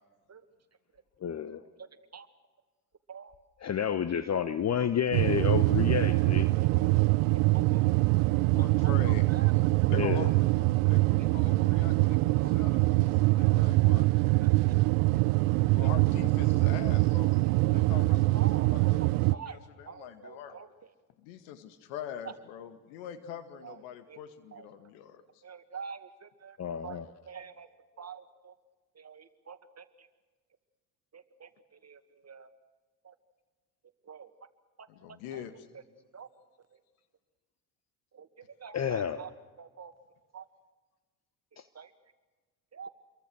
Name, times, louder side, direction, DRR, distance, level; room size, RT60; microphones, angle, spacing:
voice 1, 1.2-1.6 3.6-6.5 9.9-10.3 26.6-27.1 38.7-39.2, left 8 dB, 35° left, 13 dB, 1.1 m, -30 dB
sound 1, 5.1-19.4, right 22 dB, 70° right, 0.7 m, -24 dB
voice 2, 6.6-6.9 7.3-7.8 8.8-9.5 9.8-10.3 10.9-11.0 11.6-11.7 12.4-12.5 13.4-13.7 13.9-14.1 14.4-14.8 17.6-17.8 18.3-19.6 19.9-20.7 23.6-23.7 24.1-24.2 24.5-24.7 25.4-27.7 28.0-28.5 29.0-29.8 31.1-31.5 31.8-32.5 33.0-33.1 34.1-34.3 36.1-36.3 38.1-38.3 38.6-39.3 39.6-39.9 40.3-40.4 41.8-41.9 42.7-42.9, right 6 dB, 30° right, 9 dB, 2.1 m, -46 dB
voice 3, 8.4-9.5 9.9-10.5 10.9-14.1 15.7-17.3 17.7-20.6 21.2-25.2 34.9-35.7, left 9 dB, 70° left, 10 dB, 2.1 m, -43 dB
27.0 x 23.0 x 6.3 m, 1.3 s
hypercardioid pair, 60°, 48 cm